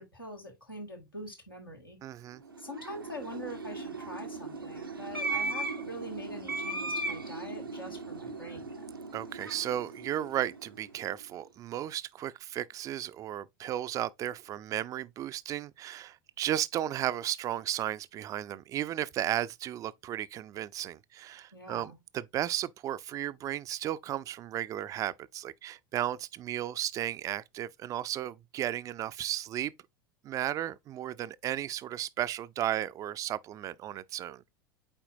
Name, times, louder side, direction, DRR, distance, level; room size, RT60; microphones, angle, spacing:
voice 1, 0.0-2.0 2.6-8.7 21.5-22.0, equal, 90° left, 2.2 m, -44 dB
voice 2, 2.0-2.4 9.1-29.7 30.2-34.4, right 12 dB, 30° right, 0.4 m, -34 dB
sound 1, 2.4-11.0, right 3 dB, 85° right, 0.7 m, -37 dB
8.8 x 4.4 x 2.6 m
figure-of-eight pair, 80°, 11 cm